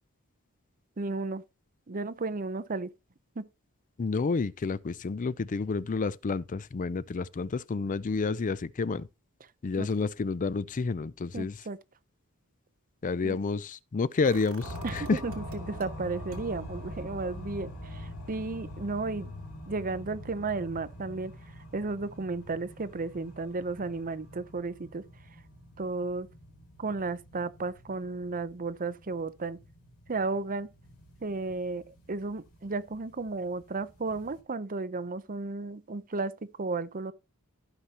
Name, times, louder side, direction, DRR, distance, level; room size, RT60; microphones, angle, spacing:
voice 1, 1.0-1.4 1.9-2.9 3.4-3.5 9.8-9.9 11.3-11.8 13.2-13.4 14.8-19.3 19.7-21.3 21.7-25.0 25.8-26.3 26.8-29.6 30.1-30.7 31.2-36.3 36.6-37.1, right 3 dB, 40° right, 0.7 m, -33 dB
voice 2, 4.0-9.1 9.6-11.6 13.0-15.2, left 4 dB, 40° left, 0.4 m, -30 dB
sound 1, 14.2-15.9 16.3-22.2 22.5-22.6, right 2 dB, 70° right, 2.1 m, -50 dB
sound 2, 14.6-34.4, left 1 dB, 85° left, 3.6 m, -45 dB
14.5 x 5.8 x 2.9 m
head